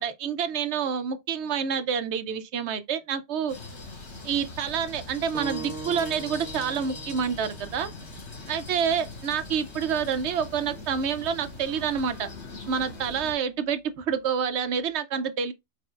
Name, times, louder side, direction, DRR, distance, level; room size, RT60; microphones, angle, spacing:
voice 1, 0.0-3.6 4.2-7.9 8.4-12.3 12.7-15.5, right 7 dB, 70° right, 0.9 m, -28 dB
sound 1, 3.5-13.3, left 3 dB, 70° left, 2.1 m, -41 dB
sound 2, 5.3-10.5, right 4 dB, 5° right, 0.5 m, -42 dB
4.5 x 4.2 x 2.4 m
omnidirectional pair, 1.2 m